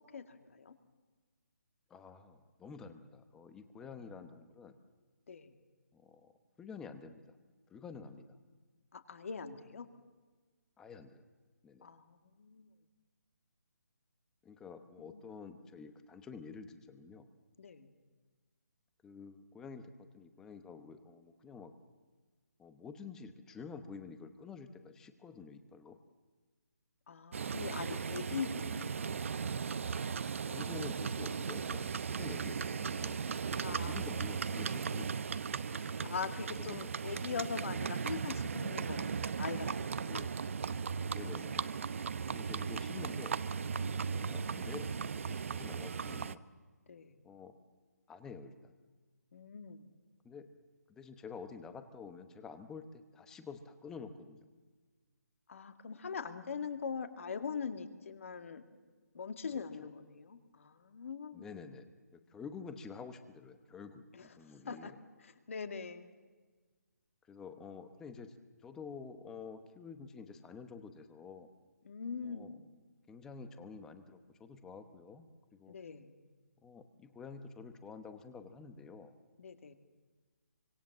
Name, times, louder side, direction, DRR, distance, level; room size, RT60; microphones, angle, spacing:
voice 1, 0.1-0.7 3.8-4.1 5.3-5.5 8.9-9.9 11.8-12.7 15.0-15.2 17.6-17.9 27.1-29.2 33.4-34.0 35.7-40.3 46.9-47.2 49.3-49.9 55.5-58.7 59.1-61.5 64.1-64.3 64.7-64.9 65.2-66.1 71.8-72.7 75.7-76.1 79.4-79.7, left 6 dB, 50° left, 8 dB, 2.3 m, -42 dB
voice 2, 1.9-4.8 5.9-6.3 6.6-7.2 7.7-8.4 10.8-11.2 11.6-11.9 14.4-17.3 19.0-21.7 22.6-26.0 30.4-33.2 33.7-35.3 36.6-36.8 41.1-41.8 42.3-43.4 44.2-46.4 47.2-47.5 48.1-48.7 50.2-50.5 50.9-54.5 59.5-59.6 61.3-65.0 67.3-68.3 68.6-71.5 72.2-72.5 73.1-75.3 75.5-75.8 76.6-79.1, left 5 dB, 5° left, 9 dB, 1.0 m, -49 dB
Livestock farm animals working animals, 27.3-46.3, right 6 dB, 50° right, 0.9 m, -37 dB
26.0 x 25.5 x 7.4 m, 1.4 s
hypercardioid pair, 170°, 9 cm